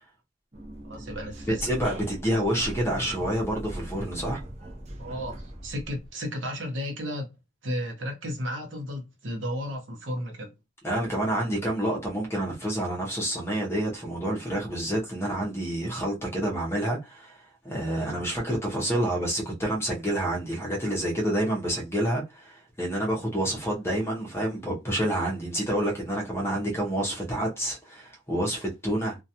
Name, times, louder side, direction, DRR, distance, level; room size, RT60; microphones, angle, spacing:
sound 1, 0.5-6.1, right 1 dB, 35° right, 0.6 m, -39 dB
voice 1, 0.8-1.7 5.0-7.3 7.6-10.5 18.7-19.0, equal, 70° right, 0.9 m, -34 dB
voice 2, 1.5-4.4 10.8-17.4 17.6-29.2, right 1 dB, 15° left, 0.7 m, -28 dB
2.3 x 2.2 x 2.7 m
head